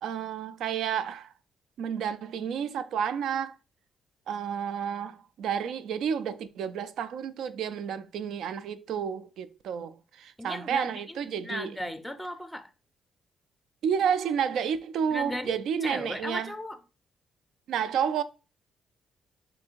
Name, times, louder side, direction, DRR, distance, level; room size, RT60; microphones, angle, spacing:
voice 1, 0.0-1.3 1.8-3.5 4.3-11.8 13.8-16.5 17.7-18.2, right 8 dB, 75° right, 0.3 m, -30 dB
voice 2, 10.4-12.7 15.1-16.8, left 1 dB, 5° left, 0.5 m, -37 dB
3.2 x 2.6 x 4.5 m
cardioid pair, 90°, 0 cm